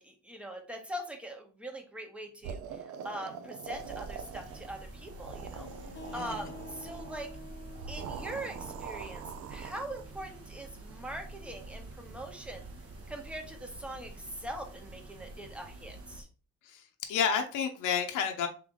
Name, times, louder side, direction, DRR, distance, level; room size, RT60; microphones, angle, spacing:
voice 1, 0.0-5.7 6.1-7.3 7.9-9.2 9.5-12.6 13.1-16.3, right 1 dB, 5° right, 2 dB, 1.1 m, -42 dB
sound 1, 2.4-4.7 5.0-7.2 7.7-10.0, right 7 dB, 75° right, 0.5 m, -43 dB
sound 2, 3.7-16.2, right 2 dB, 50° right, 1.1 m, -48 dB
sound 3, 5.5-10.9, left 2 dB, 40° left, 0.8 m, -50 dB
voice 2, 16.6-18.5, left 7 dB, 85° left, 5 dB, 0.7 m, -31 dB
3.4 x 3.1 x 3.7 m, 0.36 s
cardioid pair, 90°, 30 cm